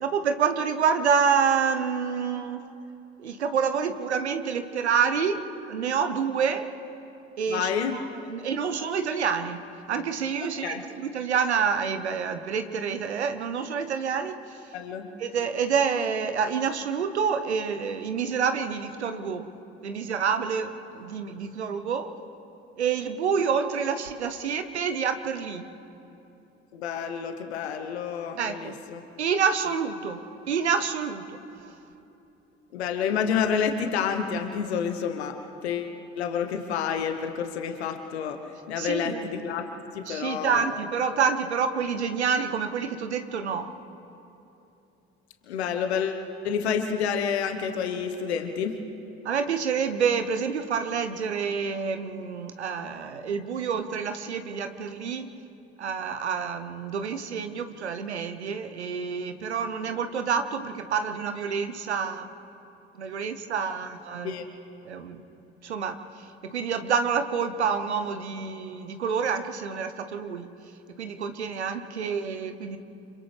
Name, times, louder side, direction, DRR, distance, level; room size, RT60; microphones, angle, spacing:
voice 1, 0.0-2.7 3.2-6.7 7.4-14.6 15.2-19.5 19.8-22.1 22.8-25.7 28.4-28.7 29.2-31.4 38.8-39.5 40.0-43.7 49.2-55.3 55.8-62.3 63.0-64.4 64.8-65.2 65.6-70.5 71.0-72.8, right 6 dB, 85° right, 9 dB, 1.0 m, -28 dB
voice 2, 7.5-8.0 10.4-10.8 14.7-15.1 26.7-29.0 32.7-35.3 35.6-38.4 38.7-39.6 39.9-40.6 45.5-48.8 63.7-63.8 64.2-64.4, left 7 dB, 80° left, 6 dB, 1.3 m, -29 dB
30.0 x 27.0 x 3.5 m, 2.9 s
figure-of-eight pair, 60°, 32 cm